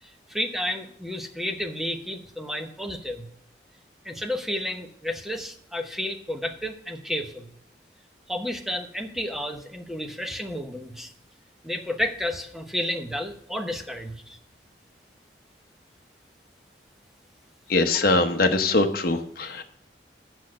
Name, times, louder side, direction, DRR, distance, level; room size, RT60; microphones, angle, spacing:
voice 1, 0.0-3.3 4.0-7.5 8.3-11.1 11.6-14.4, left 1 dB, ahead, 4 dB, 0.9 m, -31 dB
voice 2, 17.7-19.6, left 2 dB, 55° left, 6 dB, 0.9 m, -22 dB
8.3 x 6.2 x 6.4 m, 0.68 s
head